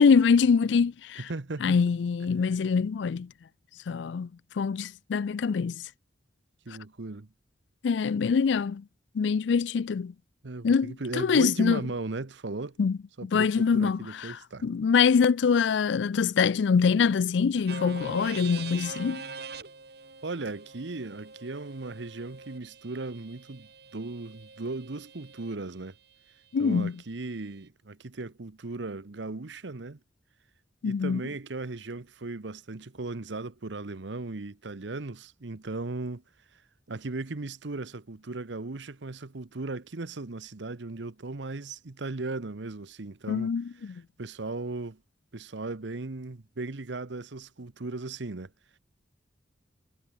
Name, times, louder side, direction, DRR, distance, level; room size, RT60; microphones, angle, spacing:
voice 1, 0.0-1.2 1.6-3.3 3.9-4.3 4.6-5.8 7.8-8.8 9.1-10.1 10.6-11.8 12.8-14.4 14.6-19.2 26.5-26.9 30.8-31.2 43.3-44.0, left 5 dB, 70° left, 0.4 m, -24 dB
voice 2, 1.2-1.8 6.7-7.3 10.4-12.8 13.2-14.7 20.2-25.9 26.6-30.0 30.8-36.2 36.9-43.5 44.2-45.0 45.3-48.5, right 3 dB, 75° right, 1.0 m, -37 dB
sound 1, 17.7-25.6, right 4 dB, 60° right, 3.9 m, -43 dB
head